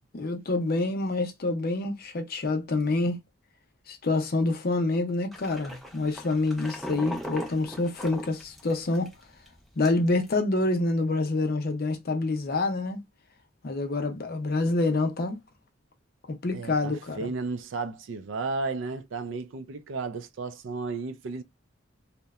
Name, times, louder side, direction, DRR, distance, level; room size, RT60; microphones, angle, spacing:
voice 1, 0.1-3.2 3.9-9.1 9.8-13.0 13.6-15.4 16.3-17.3, left 2 dB, 50° left, 0.5 m, -27 dB
sound 1, 5.3-9.1 9.5-9.6 9.8-10.3, equal, ahead, 0.5 m, -39 dB
voice 2, 16.5-21.4, right 4 dB, 70° right, 0.4 m, -33 dB
2.7 x 2.1 x 2.3 m
head